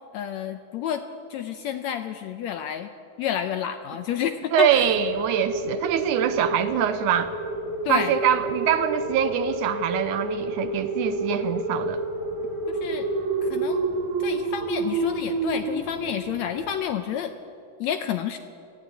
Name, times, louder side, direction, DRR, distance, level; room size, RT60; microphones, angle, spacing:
voice 1, 0.1-1.0 1.3-2.9 3.2-4.9 7.8-8.2 12.7-13.1 13.4-13.9 14.2-17.3 17.8-18.4, left 9 dB, 75° left, 8 dB, 1.7 m, -30 dB
voice 2, 4.5-7.3 7.9-12.0, right 9 dB, 75° right, 11 dB, 2.1 m, -24 dB
sound 1, 4.7-16.7, right 2 dB, 55° right, 3.9 m, -29 dB
19.5 x 14.5 x 9.3 m, 2.5 s
omnidirectional pair, 3.8 m